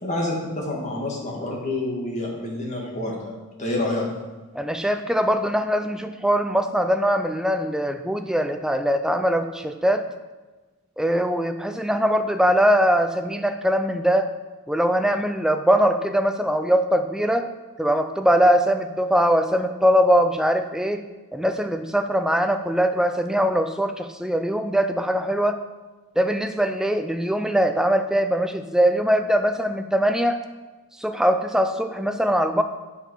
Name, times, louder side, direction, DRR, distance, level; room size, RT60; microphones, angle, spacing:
voice 1, 0.0-3.3 3.6-4.0, left 1 dB, 30° left, -2 dB, 1.7 m, -28 dB
voice 2, 4.5-10.0 11.0-14.3 14.7-17.5 17.8-21.0 21.3-25.6 26.2-30.4 31.0-32.6, equal, 5° right, 7 dB, 0.4 m, -21 dB
7.2 x 5.6 x 5.6 m, 1.2 s
head